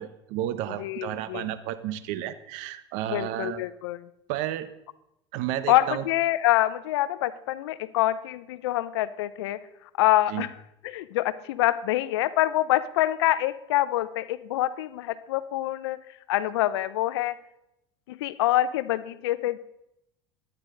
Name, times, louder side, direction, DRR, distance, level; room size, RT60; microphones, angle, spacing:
voice 1, 0.0-3.6 4.3-4.7 5.3-6.0 10.3-10.5, right 12 dB, 65° right, 13 dB, 0.8 m, -32 dB
voice 2, 0.8-1.5 3.1-4.1 5.7-9.6 10.0-10.5 10.8-16.0 16.3-17.4 18.1-19.6, left 15 dB, 80° left, 16 dB, 0.6 m, -26 dB
11.5 x 9.6 x 3.8 m, 0.84 s
supercardioid pair, 95°, 13 cm